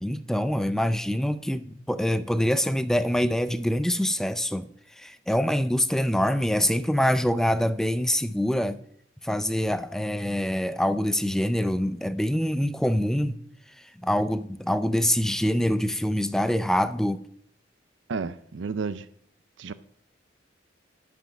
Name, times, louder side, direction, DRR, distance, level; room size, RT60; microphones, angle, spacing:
voice 1, 0.0-4.7 5.0-8.8 9.2-13.4 14.0-17.2, equal, 5° left, 0.4 m, -25 dB
voice 2, 18.1-19.0 19.6-19.7, right 4 dB, 80° right, 0.5 m, -31 dB
10.5 x 5.7 x 6.1 m
head